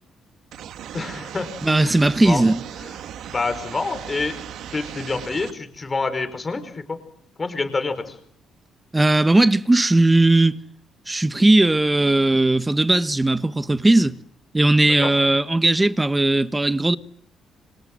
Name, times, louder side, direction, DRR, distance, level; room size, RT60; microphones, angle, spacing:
sound 1, 0.5-5.5, right 10 dB, 75° right, 1.8 m, -37 dB
voice 1, 0.9-1.5 1.8-1.9 2.2-2.4 2.8-2.9 3.3-4.4 4.7-7.0 7.4-8.1 15.0-15.1, left 3 dB, 25° left, 4.7 m, -27 dB
voice 2, 1.6-2.6 8.9-10.6 11.1-14.1 14.5-17.0, right 2 dB, 15° right, 1.2 m, -18 dB
29.5 x 25.5 x 7.6 m
cardioid pair, 110°, 0 cm